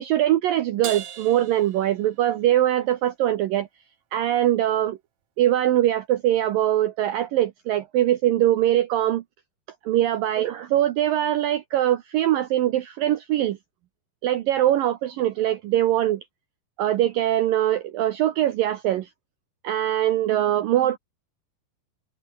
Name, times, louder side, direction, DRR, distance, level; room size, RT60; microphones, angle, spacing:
voice 1, 0.0-3.7 4.1-5.0 5.4-9.2 9.9-13.6 14.2-16.2 16.8-19.1 19.6-21.0, right 12 dB, 75° right, 2.1 m, -22 dB
Crash cymbal, 0.8-2.6, right 9 dB, 50° right, 2.4 m, -38 dB
omnidirectional pair, 5.2 m